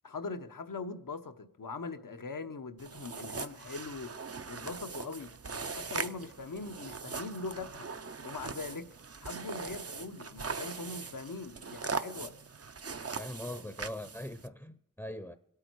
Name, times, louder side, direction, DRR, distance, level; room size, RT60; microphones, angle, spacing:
voice 1, 0.0-7.9 8.2-8.9 9.2-12.3, left 3 dB, 80° left, 1.0 m, -41 dB
sound 1, 2.8-14.5, right 5 dB, 50° right, 0.6 m, -41 dB
voice 2, 13.2-15.3, left 1 dB, 5° left, 0.7 m, -41 dB
26.5 x 8.8 x 4.6 m
wide cardioid pair, 60°, 32 cm